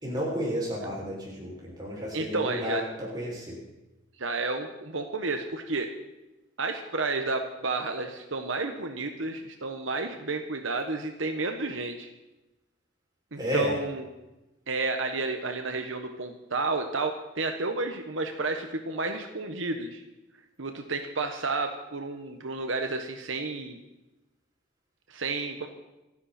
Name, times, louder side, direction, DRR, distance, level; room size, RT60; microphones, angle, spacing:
voice 1, 0.0-3.6 13.4-13.7, equal, 20° right, -4 dB, 6.2 m, -32 dB
voice 2, 2.1-2.8 4.2-5.9 6.6-12.1 13.3-14.1 14.7-20.0 20.6-23.8 25.1-25.7, right 3 dB, 75° right, 5 dB, 1.3 m, -31 dB
27.5 x 11.0 x 4.4 m, 1.0 s
head